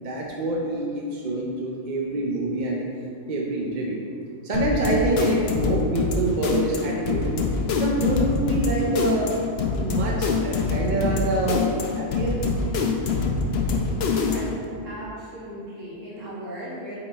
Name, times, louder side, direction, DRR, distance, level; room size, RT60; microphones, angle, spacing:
voice 1, 0.0-2.9 3.3-4.0 4.4-7.3 7.8-9.3 9.7-11.6 12.0-12.4, right 2 dB, 45° right, -2 dB, 0.7 m, -26 dB
sound 1, 4.5-14.6, left 4 dB, 60° left, 0.8 m, -25 dB
voice 2, 14.2-14.6 14.8-17.0, equal, 75° right, -7 dB, 1.9 m, -37 dB
8.0 x 4.0 x 4.0 m, 2.4 s
omnidirectional pair, 1.3 m